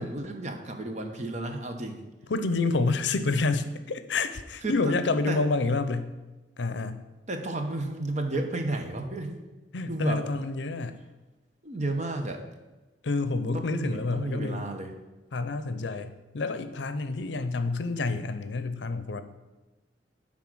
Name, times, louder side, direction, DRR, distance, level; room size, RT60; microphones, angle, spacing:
voice 1, 0.0-2.0 4.6-4.7 5.3-5.4 7.3-9.4 9.9-10.2 11.6-12.4 13.5-14.9, right 2 dB, 40° right, 4 dB, 1.0 m, -32 dB
voice 2, 2.3-6.1 6.6-7.0 9.7-11.0 13.0-14.6 15.3-19.2, left 3 dB, 70° left, 11 dB, 0.6 m, -28 dB
9.9 x 3.8 x 6.2 m, 1.1 s
head